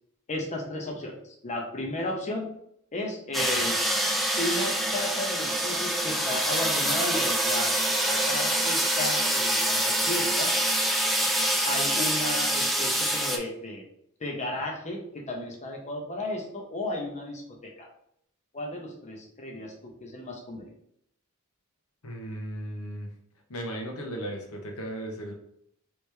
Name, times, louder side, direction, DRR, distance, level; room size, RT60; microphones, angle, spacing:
voice 1, 0.3-2.5 2.9-3.8 4.4-7.7 8.1-10.6 11.6-13.8 14.2-17.9 18.5-20.7, left 1 dB, 30° left, 0 dB, 0.8 m, -34 dB
sound 1, 3.3-13.4, right 1 dB, ahead, 0.5 m, -26 dB
voice 2, 22.0-23.1 23.5-25.3, equal, 75° left, 2 dB, 1.0 m, -36 dB
4.8 x 3.2 x 3.3 m, 0.70 s
head